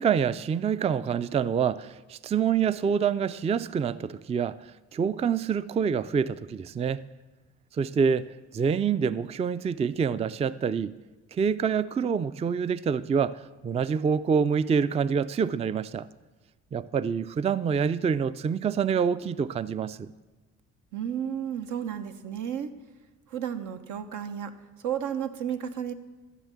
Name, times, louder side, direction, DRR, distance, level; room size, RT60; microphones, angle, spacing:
voice 1, 0.0-4.6 4.9-7.0 7.7-8.3 8.5-10.9 11.3-16.1 16.7-20.1, right 6 dB, 20° right, 16 dB, 0.3 m, -26 dB
voice 2, 20.9-22.7 23.3-24.5 24.8-25.9, right 9 dB, 80° right, 8 dB, 1.0 m, -32 dB
14.0 x 6.5 x 8.3 m, 1.2 s
cardioid pair, 90°, 30 cm